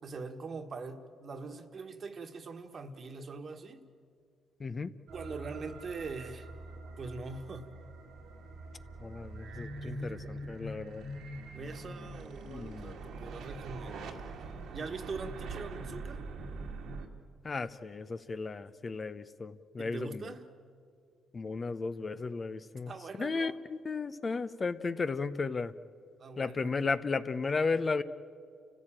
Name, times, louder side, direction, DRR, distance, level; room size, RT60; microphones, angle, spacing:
voice 1, 0.0-3.8 5.1-6.5 7.0-7.8 9.8-10.5 11.5-16.2 19.8-20.5 22.9-23.6 26.2-26.7, right 4 dB, 45° right, 1.6 m, -43 dB
voice 2, 4.6-4.9 9.0-11.0 12.4-13.0 17.4-20.3 21.3-22.9 23.2-25.7 26.4-28.0, left 4 dB, 35° left, 0.8 m, -34 dB
sound 1, 5.1-17.1, right 2 dB, 80° right, 2.1 m, -43 dB
30.0 x 15.0 x 8.9 m
cardioid pair, 90°, 0 cm